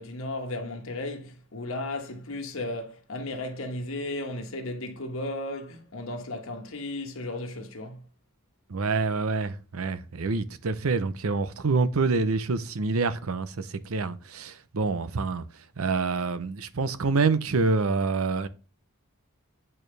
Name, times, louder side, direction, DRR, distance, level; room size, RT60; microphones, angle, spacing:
voice 1, 0.0-8.0, left 2 dB, 65° left, 1.3 m, -35 dB
voice 2, 8.7-15.4 15.8-18.5, right 4 dB, 75° right, 0.6 m, -27 dB
8.6 x 4.4 x 3.3 m
head